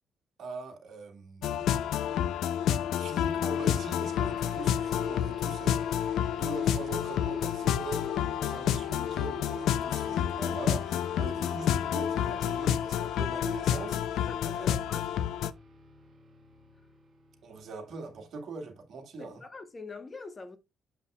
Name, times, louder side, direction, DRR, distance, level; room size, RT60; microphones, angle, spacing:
voice 1, 0.4-1.7 3.0-14.9 17.4-19.4, right 4 dB, 65° right, 2.0 m, -42 dB
sound 1, 1.4-15.5, left 10 dB, 80° left, 0.5 m, -29 dB
sound 2, 3.5-18.3, right 1 dB, 35° right, 2.4 m, -51 dB
voice 2, 14.3-15.1 19.2-20.6, left 3 dB, 30° left, 1.2 m, -44 dB
7.3 x 5.6 x 2.4 m
cardioid pair, 90°, 0 cm